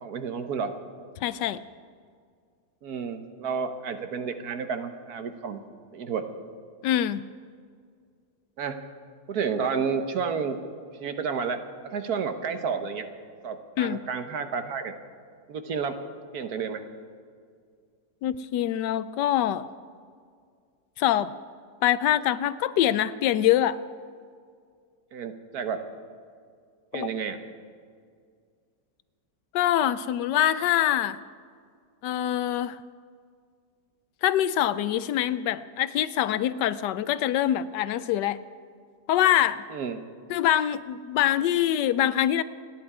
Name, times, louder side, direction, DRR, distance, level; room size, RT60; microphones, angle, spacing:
voice 1, 0.0-0.7 2.8-5.6 5.9-6.3 8.6-8.8 9.3-10.6 11.0-13.0 13.4-14.9 15.5-16.0 16.3-16.8 25.1-25.8 26.9-27.4 39.7-40.0, right 6 dB, 60° right, 8 dB, 1.4 m, -31 dB
voice 2, 1.2-1.6 6.8-7.3 13.8-14.0 18.2-19.7 21.0-21.3 21.8-23.8 26.9-27.1 29.5-31.2 32.0-32.8 34.2-38.4 39.1-39.6 40.3-42.4, left 11 dB, 80° left, 15 dB, 1.2 m, -24 dB
28.5 x 10.5 x 4.9 m, 2.1 s
omnidirectional pair, 1.9 m